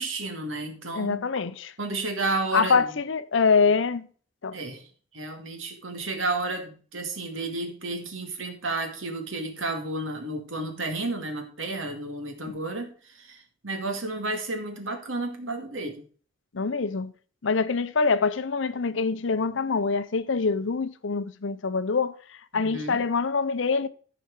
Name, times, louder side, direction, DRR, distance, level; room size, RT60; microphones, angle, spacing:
voice 1, 0.0-1.2 1.8-3.0 4.5-4.8 5.1-12.9 13.2-16.0 22.5-23.0, right 2 dB, 85° right, 2.2 m, -32 dB
voice 2, 0.9-1.7 2.5-4.1 4.4-4.6 12.4-12.5 16.5-17.1 17.4-23.9, left 5 dB, 70° left, 0.6 m, -25 dB
14.0 x 5.0 x 4.8 m
head